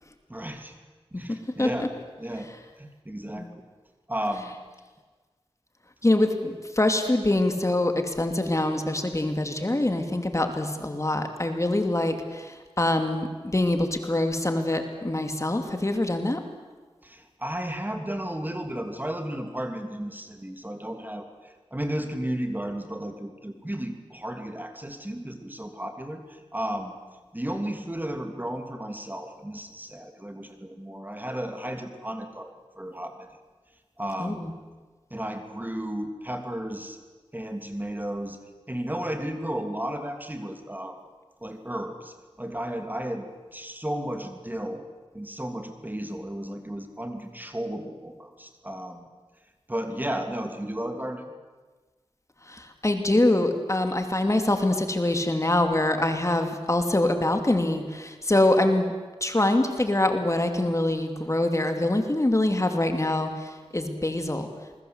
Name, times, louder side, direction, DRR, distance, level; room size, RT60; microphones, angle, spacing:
voice 1, 0.3-0.7 1.1-1.9 2.2-2.5 2.8-3.6 4.1-4.5 17.0-27.0 27.3-33.4 34.0-34.6 35.1-37.0 37.3-38.4 38.7-41.0 41.4-44.9 45.1-49.1 49.7-51.3, right 1 dB, 20° right, 5 dB, 3.0 m, -34 dB
voice 2, 1.6-1.9 2.3-2.6 3.4-3.5 4.3-4.5 6.0-16.4 34.2-34.5 52.5-58.9 59.2-64.5, left 1 dB, 30° left, 6 dB, 2.7 m, -24 dB
27.5 x 21.5 x 8.1 m, 1.4 s
wide cardioid pair, 60°, 10 cm